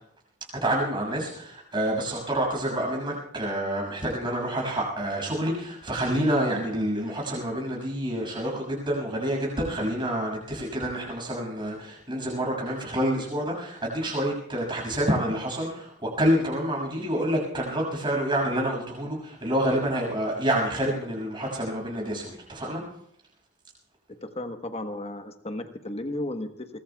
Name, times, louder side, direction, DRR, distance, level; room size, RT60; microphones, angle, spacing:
voice 1, 0.6-22.8, right 1 dB, 20° right, -1 dB, 6.5 m, -28 dB
voice 2, 24.1-26.8, left 1 dB, 30° left, 6 dB, 1.2 m, -34 dB
24.0 x 21.5 x 2.3 m, 0.72 s
head